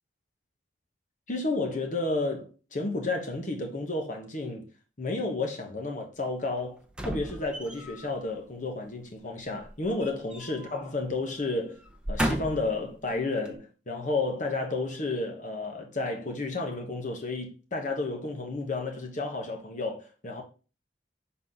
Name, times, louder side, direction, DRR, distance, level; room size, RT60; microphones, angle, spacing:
voice 1, 1.3-4.7 5.0-11.8 12.1-20.4, left 2 dB, 45° left, 1.1 m, -32 dB
sound 1, 6.9-8.1 9.6-10.8 11.1-11.3 11.8-12.8 13.4-13.5, equal, 5° right, 0.8 m, -33 dB
6.3 x 4.1 x 4.0 m
head